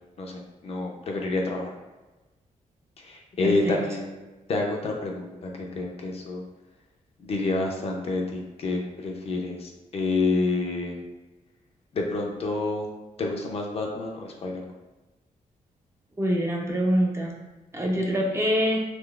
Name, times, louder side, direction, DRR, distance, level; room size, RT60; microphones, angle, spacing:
voice 1, 0.2-1.7 3.0-4.2 4.5-6.4 7.2-11.0 11.9-12.9 13.2-14.7, left 3 dB, 45° left, 0 dB, 0.5 m, -28 dB
voice 2, 3.4-3.8 16.2-17.3 17.7-18.8, equal, 20° right, -1 dB, 0.4 m, -25 dB
3.7 x 3.0 x 2.3 m, 1.2 s
wide cardioid pair, 170°, 14 cm